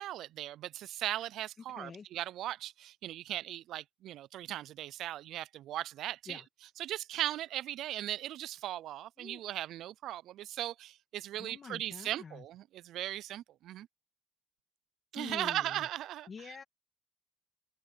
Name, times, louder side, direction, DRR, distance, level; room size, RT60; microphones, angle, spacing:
voice 1, 0.0-6.4 6.8-13.9 15.1-16.6, right 13 dB, 75° right, 0.4 m, -38 dB
voice 2, 1.7-2.1 6.3-6.5 9.2-9.4 11.4-12.4 15.2-15.9 16.3-16.6, left 5 dB, 40° left, 1.9 m, -46 dB
open air
cardioid pair, 95°, 0 cm